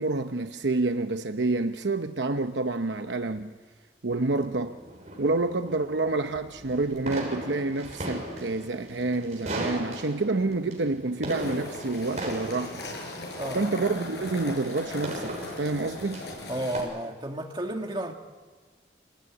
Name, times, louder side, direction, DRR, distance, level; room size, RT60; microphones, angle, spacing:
voice 1, 0.0-3.5 4.0-4.8 5.2-12.8 13.5-16.2, right 3 dB, 90° right, 0.9 m, -28 dB
sound 1, 4.3-16.8, right 1 dB, 40° right, 6.5 m, -38 dB
sound 2, 11.3-16.8, left 2 dB, 70° left, 7.4 m, -39 dB
voice 2, 13.2-13.7 16.5-18.1, right 1 dB, 25° right, 2.4 m, -32 dB
27.0 x 19.5 x 9.8 m
head